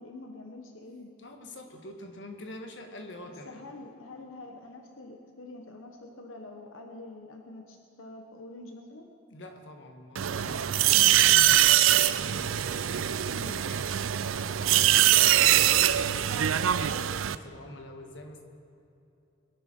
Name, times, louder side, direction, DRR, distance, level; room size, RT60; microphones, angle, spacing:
voice 1, 0.0-1.1 3.2-9.0 11.5-11.6 13.3-13.5, left 2 dB, 90° left, 3 dB, 1.1 m, -46 dB
voice 2, 1.2-3.6 9.3-11.7 12.1-14.1 14.6-18.5, left 1 dB, 65° left, 4 dB, 1.6 m, -45 dB
sound 1, 10.2-17.4, right 12 dB, 85° right, 0.4 m, -23 dB
22.0 x 11.0 x 4.5 m, 2.8 s
head